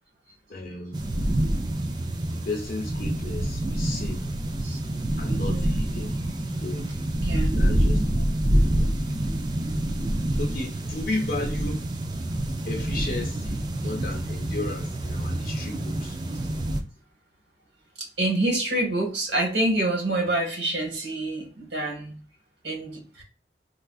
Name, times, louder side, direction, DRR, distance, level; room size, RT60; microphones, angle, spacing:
voice 1, 0.5-1.0 2.3-4.3 5.2-6.2 6.6-6.9 7.5-8.2 8.8-9.0 10.4-12.0 12.7-16.2, left 2 dB, 55° left, 0.8 m, -34 dB
sound 1, 0.9-16.8, right 1 dB, 25° right, 0.4 m, -27 dB
voice 2, 7.2-7.5 18.0-22.2 22.6-23.2, right 1 dB, 75° right, 1.5 m, -27 dB
4.0 x 2.4 x 2.3 m
head